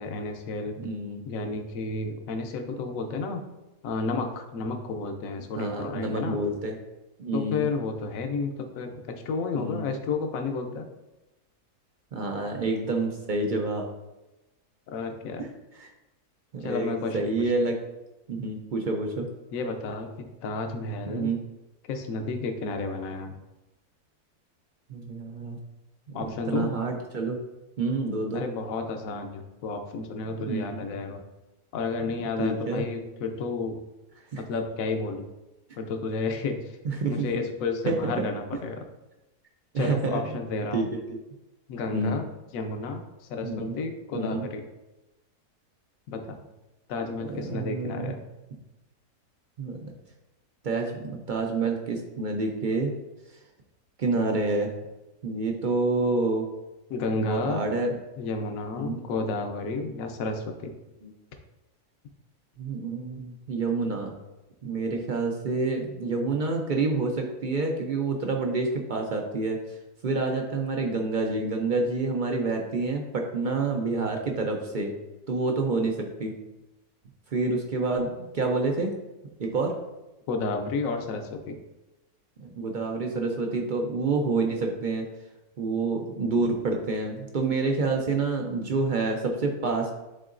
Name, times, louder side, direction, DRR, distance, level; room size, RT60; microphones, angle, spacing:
voice 1, 0.0-0.8 1.2-3.5 3.8-6.4 7.3-10.9 12.4-12.5 14.9-15.5 16.6-17.5 19.5-20.1 20.4-21.3 21.8-23.4 26.1-26.7 28.3-31.2 31.7-33.8 34.4-35.2 35.8-36.8 37.1-38.9 39.8-40.9 41.7-42.3 42.5-44.6 46.1-46.4 46.9-48.2 56.9-57.6 58.2-60.7 80.3-81.6, left 3 dB, 65° left, 4 dB, 1.1 m, -31 dB
voice 2, 0.8-1.2 5.6-6.8 7.2-7.7 9.5-9.8 12.1-13.9 15.4-15.5 15.8-15.9 16.5-17.8 18.3-19.3 21.1-21.4 24.9-25.6 26.5-27.4 27.8-28.4 30.4-30.9 32.2-32.8 34.3-34.4 36.8-37.3 37.9-38.1 39.7-40.4 40.7-41.2 41.9-42.2 43.4-43.8 44.1-44.4 47.2-48.2 49.6-49.9 50.6-52.9 54.0-54.7 55.2-56.5 57.1-57.9 58.7-59.0 61.0-61.1 62.6-64.1 64.6-69.6 70.0-74.9 75.3-76.3 77.3-78.9 79.4-79.7 82.4-85.0 85.6-89.9, right 3 dB, 65° right, 2 dB, 0.4 m, -28 dB
10.0 x 3.8 x 2.5 m, 1.0 s
omnidirectional pair, 1.6 m